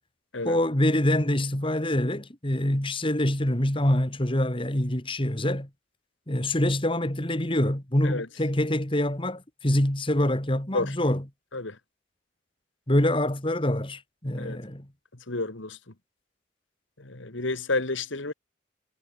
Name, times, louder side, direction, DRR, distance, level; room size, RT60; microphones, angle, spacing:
voice 1, 0.4-5.7 6.3-11.2 12.9-14.9, left 1 dB, 25° left, 2.4 m, -25 dB
voice 2, 15.3-15.8 17.0-18.3, left 3 dB, 75° left, 2.2 m, -30 dB
head